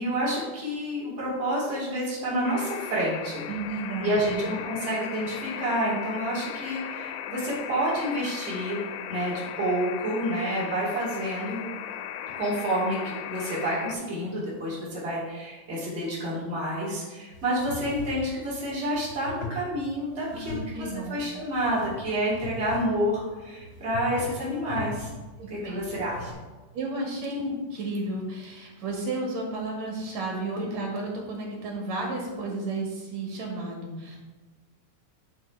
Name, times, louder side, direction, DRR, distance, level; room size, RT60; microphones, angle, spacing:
voice 1, 0.0-3.4 4.0-8.8 9.1-11.6 12.4-25.1 25.5-26.3, equal, 20° right, -7 dB, 3.0 m, -29 dB
sound 1, 2.4-13.9, left 10 dB, 80° left, 1.9 m, -37 dB
voice 2, 3.5-4.4 20.3-21.1 25.4-26.0 26.7-34.2, right 2 dB, 55° right, -2 dB, 3.1 m, -33 dB
sound 2, 17.3-26.3, left 2 dB, 45° left, 1.5 m, -40 dB
10.5 x 4.4 x 4.7 m, 1.2 s
omnidirectional pair, 4.0 m